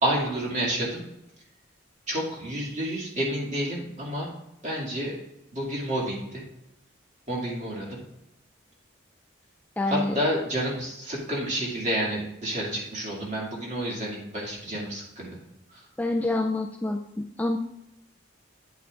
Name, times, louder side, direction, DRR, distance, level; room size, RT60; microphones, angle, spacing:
voice 1, 0.0-1.0 2.1-4.3 4.6-5.2 5.5-6.4 7.3-8.0 9.9-15.4 15.7-15.9, right 1 dB, 35° right, -3 dB, 2.1 m, -29 dB
voice 2, 9.8-10.2 16.0-17.6, left 2 dB, 10° left, 2 dB, 0.3 m, -27 dB
9.1 x 8.5 x 2.4 m, 0.88 s
head